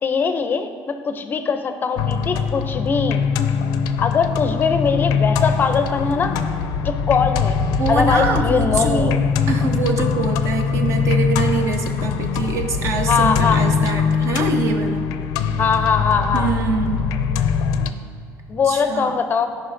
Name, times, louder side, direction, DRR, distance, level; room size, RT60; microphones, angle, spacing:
voice 1, 0.0-3.3 4.0-6.4 6.8-7.6 7.9-9.2 13.1-13.6 15.6-16.5 18.5-19.5, left 5 dB, 35° left, 8 dB, 0.5 m, -21 dB
sound 1, 2.0-17.9, left 6 dB, 85° left, 0.4 m, -22 dB
voice 2, 7.8-9.2 9.5-15.0 16.3-17.0 18.6-19.2, right 4 dB, 50° right, 4 dB, 0.8 m, -24 dB
14.0 x 5.1 x 2.6 m, 2.4 s
cardioid pair, 125°, 6 cm